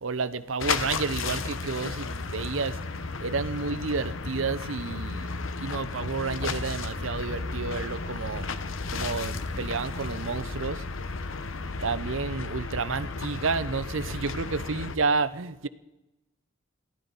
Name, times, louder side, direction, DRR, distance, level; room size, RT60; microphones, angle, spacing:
voice 1, 0.0-2.8 3.2-5.3 5.6-8.5 8.9-10.8 11.8-15.7, right 4 dB, 85° right, 0.8 m, -30 dB
sound 1, 0.6-15.0, left 4 dB, 85° left, 1.0 m, -33 dB
23.0 x 15.0 x 4.1 m
head